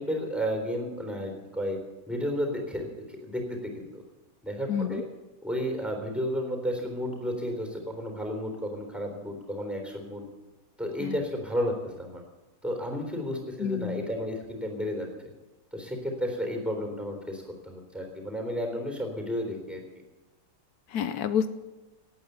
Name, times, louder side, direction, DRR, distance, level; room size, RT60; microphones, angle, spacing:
voice 1, 0.0-1.8 2.1-4.0 4.4-5.1 5.4-10.3 10.8-12.2 12.6-15.1 15.7-19.8, equal, ahead, 2 dB, 3.6 m, -32 dB
voice 2, 4.7-5.0 11.0-11.1 13.6-14.1 20.9-21.5, left 8 dB, 80° left, 11 dB, 1.2 m, -29 dB
18.5 x 9.0 x 8.1 m, 1.1 s
omnidirectional pair, 1.6 m